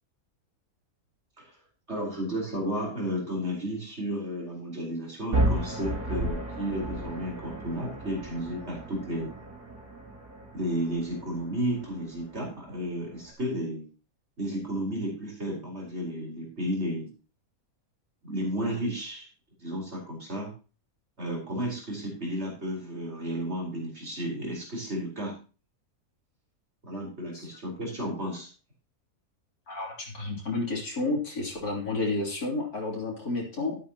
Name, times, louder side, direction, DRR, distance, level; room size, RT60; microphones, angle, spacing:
voice 1, 1.9-9.3 10.5-13.8 14.4-17.1 18.2-19.3 19.6-20.5 21.2-25.4 26.8-28.5, equal, 45° right, -2 dB, 4.8 m, -33 dB
sound 1, 5.3-13.3, right 1 dB, 75° right, 4.1 m, -34 dB
voice 2, 29.7-33.8, left 2 dB, 85° left, -4 dB, 3.9 m, -31 dB
13.0 x 11.0 x 3.0 m, 0.34 s
omnidirectional pair, 1.6 m